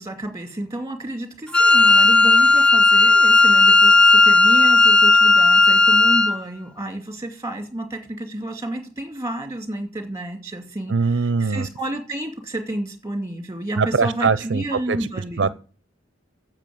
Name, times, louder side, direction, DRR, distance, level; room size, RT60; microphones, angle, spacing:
voice 1, 0.0-15.5, right 1 dB, 15° right, 2.4 m, -30 dB
Wind instrument woodwind instrument, 1.5-6.4, left 3 dB, 5° left, 0.6 m, -14 dB
voice 2, 10.9-11.7 13.8-15.1 15.4-15.5, right 5 dB, 70° right, 0.6 m, -22 dB
9.8 x 7.6 x 9.3 m
head